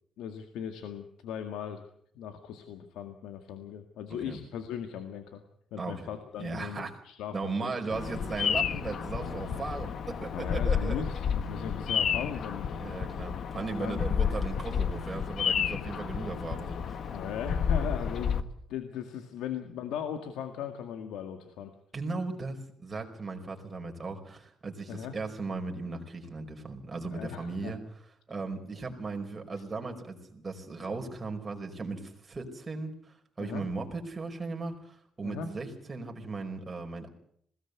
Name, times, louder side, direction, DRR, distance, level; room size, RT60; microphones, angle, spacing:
voice 1, 0.2-1.9 2.2-5.4 5.7-7.8 9.2-9.6 10.3-12.7 13.8-14.0 17.1-21.7 24.9-25.2 27.1-27.8 33.4-33.7 35.2-35.5, left 8 dB, 90° left, 7 dB, 2.0 m, -38 dB
voice 2, 5.8-6.1 6.4-6.9 7.3-11.0 12.8-17.1 21.9-27.8 28.3-37.1, right 3 dB, 25° right, 3 dB, 5.1 m, -37 dB
Bird vocalization bird call bird song, 7.9-18.4, left 7 dB, 60° left, 1.4 m, -31 dB
21.0 x 18.0 x 8.2 m, 0.66 s
cardioid pair, 90°, 0 cm